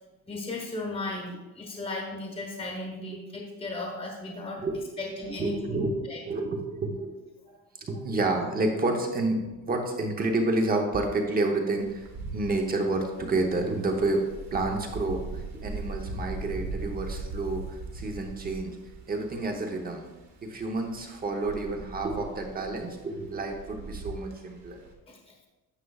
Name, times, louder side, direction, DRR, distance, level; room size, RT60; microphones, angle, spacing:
voice 1, 0.3-4.6 5.0-5.8 6.1-6.2 7.5-7.6 25.1-25.2, left 2 dB, 15° left, 0 dB, 1.2 m, -36 dB
voice 2, 4.6-7.2 7.8-12.1 12.3-17.6 17.9-18.8 19.1-20.0 20.4-24.8, right 2 dB, 25° right, 3 dB, 0.9 m, -29 dB
Wind, 11.8-24.9, right 3 dB, 50° right, 1.3 m, -40 dB
9.9 x 6.7 x 2.4 m, 1.1 s
cardioid pair, 165°, 36 cm